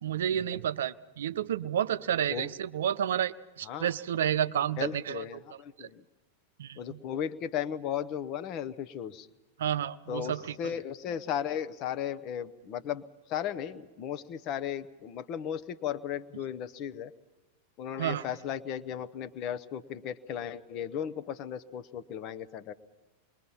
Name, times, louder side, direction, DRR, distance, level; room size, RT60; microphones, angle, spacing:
voice 1, 0.0-5.2 5.8-5.9 6.6-7.0 9.6-10.6 18.0-18.2, right 10 dB, 60° right, 13 dB, 0.6 m, -30 dB
voice 2, 4.8-6.0 6.8-9.3 10.1-13.0 13.3-17.1 17.8-22.7, left 9 dB, 40° left, 12 dB, 1.0 m, -35 dB
27.5 x 22.0 x 5.7 m, 1.2 s
figure-of-eight pair, 90°, 0 cm